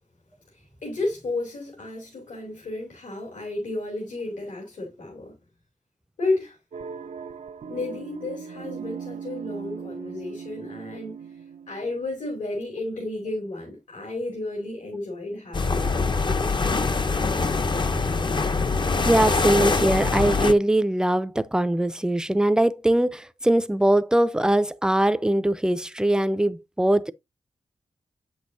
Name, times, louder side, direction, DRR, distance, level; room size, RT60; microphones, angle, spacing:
voice 1, 0.5-5.3 6.2-6.6 7.7-11.4 11.7-16.5, left 2 dB, 75° left, 2.7 m, -32 dB
sound 1, 6.7-12.1, right 6 dB, 80° right, 0.6 m, -38 dB
sound 2, 15.5-20.5, left 4 dB, 35° left, 0.7 m, -23 dB
voice 2, 19.0-27.1, right 1 dB, 5° right, 0.5 m, -21 dB
7.9 x 6.3 x 2.7 m
wide cardioid pair, 75°, 13 cm